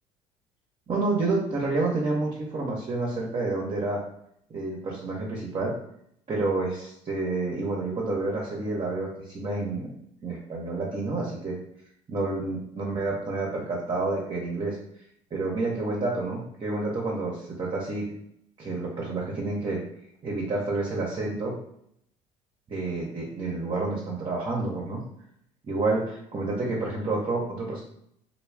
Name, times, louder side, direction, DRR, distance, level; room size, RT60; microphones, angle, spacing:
voice 1, 0.9-4.0 4.5-5.7 6.3-9.9 10.2-11.6 12.1-14.8 15.3-18.0 18.6-19.8 20.2-21.6 22.7-25.0 25.6-27.8, right 3 dB, 35° right, -3 dB, 0.8 m, -29 dB
2.3 x 2.1 x 3.3 m, 0.72 s
hypercardioid pair, 65°, 17 cm